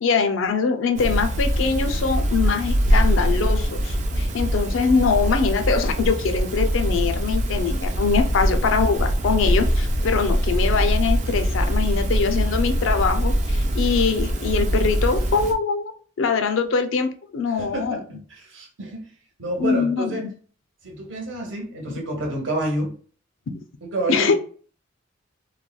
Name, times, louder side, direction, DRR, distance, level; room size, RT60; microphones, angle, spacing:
voice 1, 0.0-15.9 16.2-18.0 19.6-20.2 23.5-23.6 24.1-24.3, left 5 dB, 75° left, 8 dB, 0.4 m, -23 dB
sound 1, 1.0-15.5, equal, 35° right, 0.4 m, -22 dB
voice 2, 17.5-18.0 18.3-19.1 19.4-20.2 20.8-22.9 23.8-24.3, right 1 dB, 70° right, 0 dB, 1.0 m, -28 dB
3.2 x 2.1 x 2.2 m, 0.43 s
head